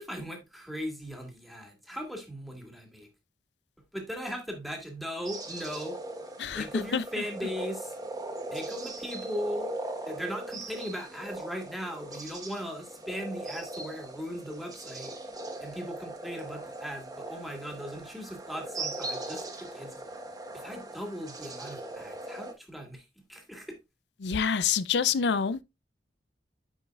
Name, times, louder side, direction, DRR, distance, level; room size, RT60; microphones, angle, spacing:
voice 1, 0.0-3.1 3.9-6.0 6.5-7.9 8.5-9.7 10.1-15.1 15.6-20.0 20.5-23.8, equal, ahead, 1.8 m, -38 dB
sound 1, 5.3-22.5, right 2 dB, 20° right, 1.2 m, -40 dB
voice 2, 24.2-25.6, left 6 dB, 75° left, 0.5 m, -26 dB
9.3 x 5.4 x 2.4 m
head